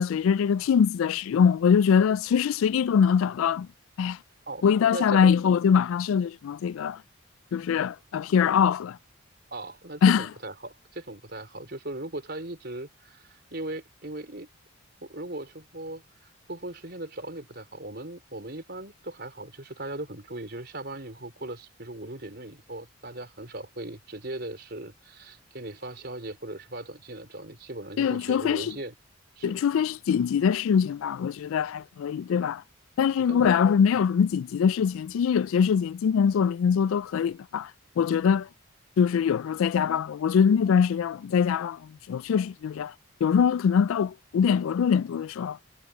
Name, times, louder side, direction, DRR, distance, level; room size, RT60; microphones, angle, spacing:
voice 1, 0.0-3.7 4.0-4.2 4.6-7.0 7.5-9.0 10.0-10.3 28.0-28.7 29.4-32.6 33.0-37.7 38.0-38.5 39.0-41.8 42.1-42.9 43.2-45.6, left 7 dB, 75° left, 0.3 m, -23 dB
voice 2, 4.5-5.3 9.5-14.5 15.0-28.9 29.4-29.6 33.2-33.5, right 1 dB, 50° right, 4.7 m, -38 dB
head